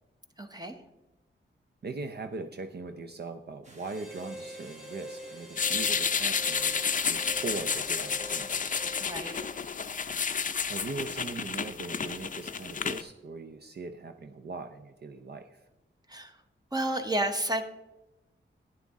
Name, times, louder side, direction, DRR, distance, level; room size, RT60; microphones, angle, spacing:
voice 1, 0.4-0.8 9.0-9.4 16.1-16.4 16.7-17.6, right 1 dB, 20° right, 6 dB, 0.9 m, -31 dB
voice 2, 1.8-8.6 10.7-15.6, right 3 dB, 55° right, 7 dB, 0.6 m, -40 dB
sound 1, 3.6-9.3, right 1 dB, 35° right, 1.7 m, -55 dB
Harmonica, 3.8-9.8, equal, ahead, 2.0 m, -45 dB
sound 2, 5.6-13.0, left 6 dB, 40° left, 0.5 m, -31 dB
11.5 x 9.6 x 3.6 m, 1.0 s
wide cardioid pair, 105°, 20 cm